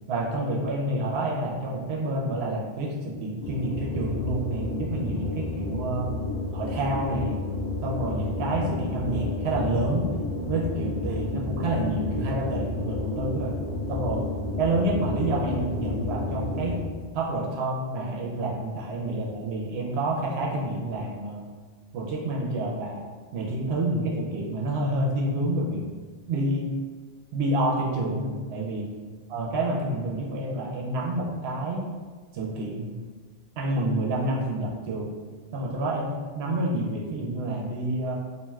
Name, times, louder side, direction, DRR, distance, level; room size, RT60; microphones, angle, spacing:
voice 1, 0.1-6.2 6.5-7.4 7.8-10.2 10.5-13.5 13.9-14.3 14.6-16.8 17.1-21.4 21.9-23.0 23.3-25.8 26.3-26.7 27.3-28.9 29.3-31.9 32.3-32.9 33.6-35.1 35.5-38.1, right 1 dB, 85° right, -3 dB, 0.8 m, -28 dB
sound 1, 3.4-17.1, left 2 dB, 85° left, 1.0 m, -31 dB
2.5 x 2.3 x 3.1 m, 1.4 s
omnidirectional pair, 1.0 m